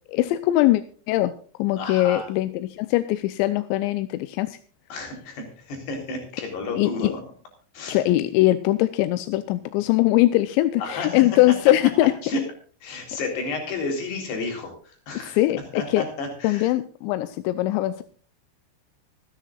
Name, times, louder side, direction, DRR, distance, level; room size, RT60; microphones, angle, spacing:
voice 1, 0.1-1.3 1.6-4.6 6.8-7.1 7.9-12.1 15.2-16.0 16.4-18.0, left 16 dB, 80° left, 11 dB, 2.7 m, -21 dB
voice 2, 1.8-2.3 4.9-7.2 7.7-8.0 10.8-11.2 12.2-12.4 12.8-15.4 15.8-16.7, left 3 dB, 60° left, 3 dB, 5.5 m, -31 dB
26.0 x 10.0 x 2.4 m, 0.43 s
omnidirectional pair, 5.6 m